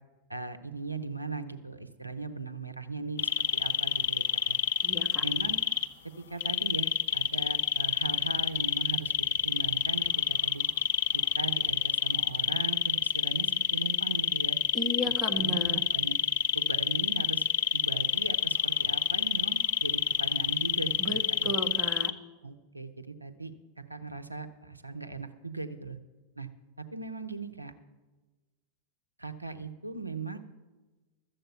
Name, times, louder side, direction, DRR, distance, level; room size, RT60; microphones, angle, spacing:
voice 1, 0.3-4.6 5.2-5.6 6.0-10.7 11.1-14.6 15.0-16.2 16.5-17.5 17.7-21.5 22.4-26.0 26.4-26.5 26.8-27.7 29.2-30.4, right 4 dB, 85° right, 8 dB, 0.7 m, -39 dB
sound 1, 3.2-5.9 6.4-22.1, left 9 dB, 55° left, 0.6 m, -27 dB
voice 2, 4.8-5.2 14.7-15.8 21.0-22.1, equal, 5° left, 2 dB, 1.5 m, -34 dB
13.0 x 7.8 x 8.0 m, 1.2 s
figure-of-eight pair, 90°, 0 cm